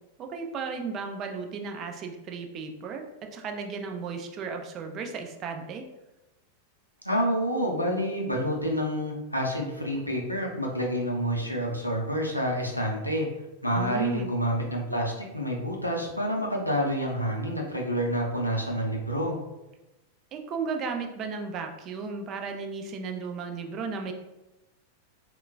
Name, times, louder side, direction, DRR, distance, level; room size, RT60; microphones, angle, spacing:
voice 1, 0.2-3.0 3.3-5.9 13.7-14.3 20.3-24.1, right 5 dB, 35° right, 4 dB, 0.4 m, -34 dB
voice 2, 7.0-13.3 13.6-19.4, equal, 90° left, -1 dB, 0.5 m, -28 dB
3.7 x 2.2 x 2.2 m, 0.97 s
figure-of-eight pair, 90°, 0 cm